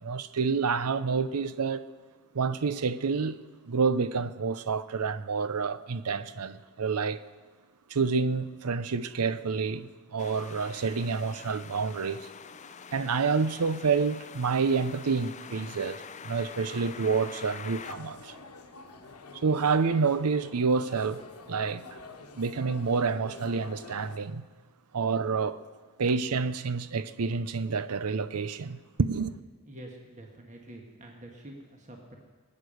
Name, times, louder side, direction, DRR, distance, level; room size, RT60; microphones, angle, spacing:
voice 1, 0.0-1.9 2.3-3.4 3.7-7.2 7.9-12.2 12.9-18.3 19.3-21.8 22.4-24.4 24.9-25.6 26.0-29.3, right 5 dB, 90° right, 0.6 m, -28 dB
sound 1, 10.2-17.9, left 6 dB, 30° left, 0.5 m, -45 dB
sound 2, 17.7-24.2, left 4 dB, 85° left, 1.2 m, -48 dB
voice 2, 29.6-32.2, right 1 dB, 35° right, 1.7 m, -47 dB
19.0 x 8.8 x 6.5 m
head